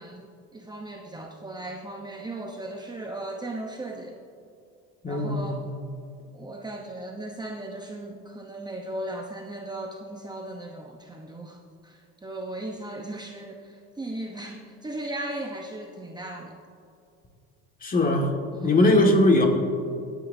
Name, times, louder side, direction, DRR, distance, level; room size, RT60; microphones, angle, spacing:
voice 1, 0.0-4.2 5.1-5.7 6.3-16.6 18.5-18.8, right 1 dB, 15° right, 1 dB, 0.9 m, -37 dB
voice 2, 5.0-5.4 17.8-18.3 18.6-19.5, left 1 dB, 25° left, 2 dB, 1.9 m, -20 dB
22.0 x 9.1 x 2.7 m, 2.4 s
supercardioid pair, 100°, 31 cm